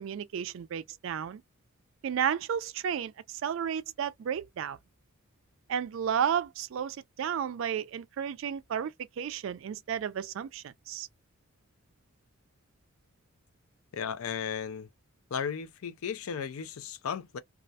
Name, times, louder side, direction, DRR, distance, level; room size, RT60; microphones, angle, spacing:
voice 1, 0.0-1.4 2.0-4.8 5.7-11.1, right 8 dB, 65° right, 0.3 m, -32 dB
voice 2, 13.9-14.9 15.3-17.4, left 7 dB, 85° left, 0.4 m, -35 dB
2.3 x 2.1 x 2.6 m
head